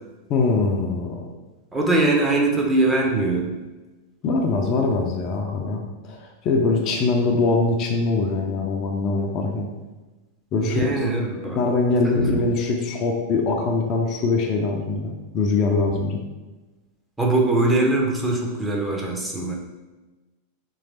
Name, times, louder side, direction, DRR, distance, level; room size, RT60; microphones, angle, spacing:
voice 1, 0.3-1.3 4.2-9.7 10.5-10.9 11.6-16.2, left 3 dB, 35° left, 1 dB, 0.5 m, -22 dB
voice 2, 1.7-3.6 10.6-11.6 12.1-12.4 17.2-19.5, right 2 dB, 10° right, -1 dB, 0.7 m, -22 dB
3.2 x 3.2 x 3.9 m, 1.2 s
figure-of-eight pair, 90°, 0 cm